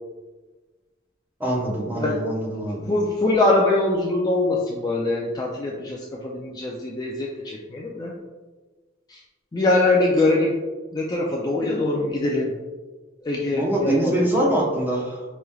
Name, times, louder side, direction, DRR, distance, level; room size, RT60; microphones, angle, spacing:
voice 1, 1.4-2.9 13.5-15.2, right 1 dB, 10° right, -4 dB, 0.8 m, -24 dB
voice 2, 2.9-8.1 9.1-9.2 9.5-10.5 10.9-12.5 13.2-14.3, left 2 dB, 20° left, -2 dB, 0.3 m, -23 dB
4.8 x 3.1 x 2.3 m, 1.3 s
head